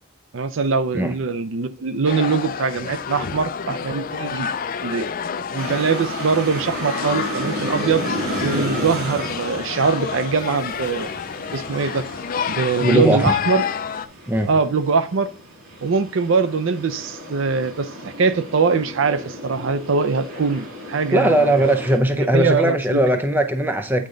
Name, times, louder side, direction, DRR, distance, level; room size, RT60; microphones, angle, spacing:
voice 1, 0.3-4.5 4.8-5.1 5.5-8.0 8.4-11.1 11.5-12.0 12.5-13.6 14.5-15.3 15.8-21.7 22.3-23.0, right 5 dB, 65° right, 0.5 m, -22 dB
sound 1, 2.1-14.1, left 7 dB, 40° left, 0.3 m, -29 dB
sound 2, 5.6-22.0, equal, 85° right, 3.5 m, -33 dB
voice 2, 12.8-13.4 14.3-14.5 21.1-24.1, right 1 dB, 10° right, 0.6 m, -19 dB
8.5 x 3.7 x 3.9 m
head